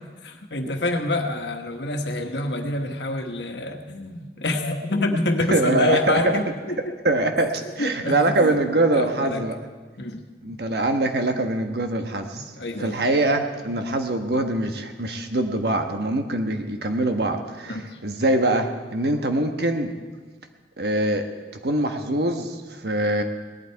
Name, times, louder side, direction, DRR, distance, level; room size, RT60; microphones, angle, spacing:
voice 1, 0.2-6.5 7.8-8.5 8.9-9.4 10.0-10.6 12.3-13.0 17.7-18.0, left 2 dB, 80° left, 4 dB, 1.4 m, -27 dB
voice 2, 5.5-6.4 7.0-9.6 10.4-12.5 12.8-19.9 20.8-21.2 21.6-23.2, right 2 dB, 65° right, 5 dB, 1.3 m, -23 dB
18.5 x 11.5 x 4.7 m, 1.4 s
head